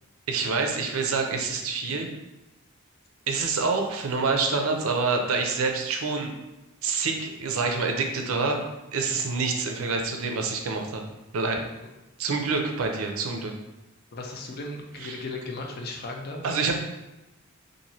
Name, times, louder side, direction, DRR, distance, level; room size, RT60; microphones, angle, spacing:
voice 1, 0.3-2.1 3.3-6.3 6.8-8.6 8.9-11.0 11.3-11.6 12.2-13.5 15.0-15.2 16.4-16.7, right 4 dB, 70° right, 3 dB, 0.4 m, -27 dB
voice 2, 14.1-16.5, left 2 dB, 45° left, 2 dB, 0.4 m, -36 dB
2.9 x 2.5 x 2.7 m, 1.0 s
head